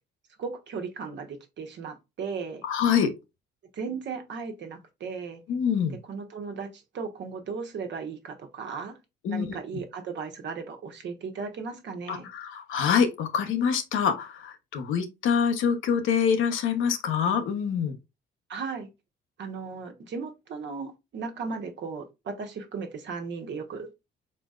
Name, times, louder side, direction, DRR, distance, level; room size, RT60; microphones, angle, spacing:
voice 1, 0.4-2.6 3.7-5.4 5.9-9.0 9.3-12.3 18.5-18.9 19.4-23.9, right 5 dB, 65° right, 1.2 m, -36 dB
voice 2, 2.6-3.1 5.5-6.0 9.2-9.6 12.1-18.0, left 7 dB, 80° left, 1.0 m, -25 dB
4.2 x 4.2 x 2.4 m
cardioid pair, 90°, 20 cm